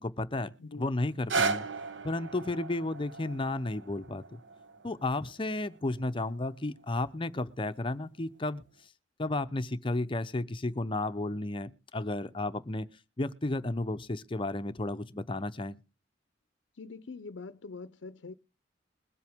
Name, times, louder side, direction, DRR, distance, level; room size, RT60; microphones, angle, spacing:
voice 1, 0.0-1.6 2.0-4.4 4.8-8.6 9.2-12.9 13.2-15.7, left 2 dB, 25° left, 0.6 m, -33 dB
voice 2, 0.6-1.0 16.7-18.3, left 4 dB, 75° left, 0.6 m, -44 dB
sound 1, 1.0-7.1 7.8-7.9, right 4 dB, 75° right, 1.0 m, -37 dB
21.5 x 7.9 x 3.5 m
head